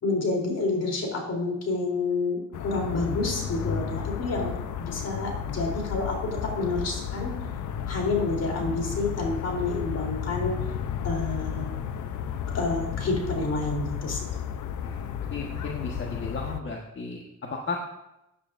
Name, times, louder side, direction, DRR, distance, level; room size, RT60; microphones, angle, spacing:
voice 1, 0.0-7.3 7.9-10.6 11.0-11.7 12.5-14.2, left 3 dB, 55° left, 0 dB, 3.6 m, -29 dB
sound 1, 2.5-16.6, left 8 dB, 75° left, 0.8 m, -33 dB
voice 2, 14.8-17.8, left 4 dB, 40° left, 0 dB, 1.5 m, -35 dB
15.5 x 9.7 x 2.6 m, 0.90 s
cardioid pair, 90°, 30 cm